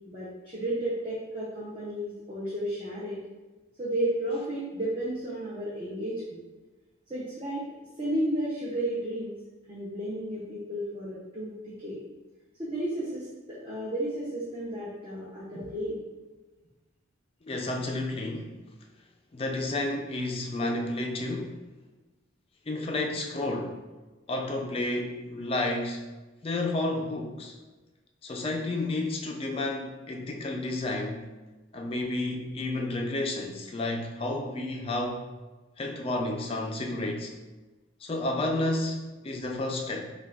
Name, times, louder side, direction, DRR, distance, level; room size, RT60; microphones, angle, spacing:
voice 1, 0.1-3.2 3.8-6.4 7.1-7.7 8.0-9.4 9.7-12.0 12.6-16.0, right 1 dB, 30° right, -7 dB, 0.6 m, -33 dB
voice 2, 17.5-18.5 19.3-21.6 22.7-23.8 24.3-26.0 26.4-27.5 28.2-31.3 31.7-35.2 35.8-37.3 38.0-40.1, left 2 dB, 30° left, 2 dB, 0.4 m, -31 dB
5.9 x 2.2 x 2.3 m, 1.2 s
head